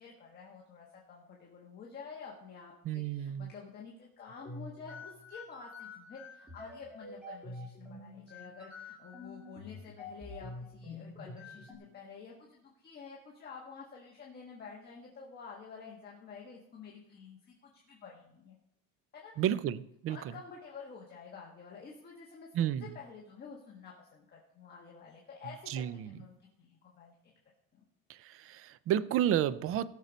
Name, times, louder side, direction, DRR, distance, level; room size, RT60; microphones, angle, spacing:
voice 1, 0.0-18.6 19.1-19.3 20.1-22.5 22.8-27.3 27.7-27.8, left 5 dB, 25° left, -2 dB, 1.5 m, -50 dB
voice 2, 2.8-3.5 19.4-20.3 22.5-22.9 25.7-26.1 28.1-29.9, right 10 dB, 40° right, 16 dB, 0.5 m, -31 dB
sound 1, 4.3-11.7, left 2 dB, 5° right, 2.7 m, -47 dB
17.5 x 6.5 x 4.1 m, 0.79 s
cardioid pair, 150°, 37 cm